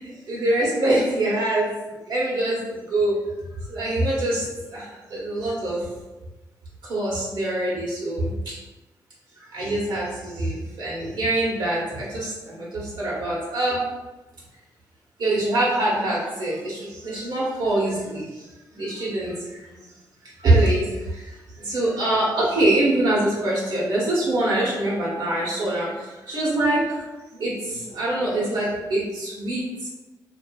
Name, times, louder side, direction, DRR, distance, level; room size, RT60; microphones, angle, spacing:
voice 1, 0.0-1.7 2.1-3.2 3.7-4.4 4.7-4.8 5.1-5.8 6.9-8.5 9.5-13.8 15.2-18.3 18.7-19.8 20.4-21.3 21.6-25.9 26.2-27.0 27.4-29.9, right 1 dB, 80° right, -6 dB, 0.9 m, -24 dB
2.5 x 2.4 x 2.2 m, 1.1 s
cardioid pair, 65°, 8 cm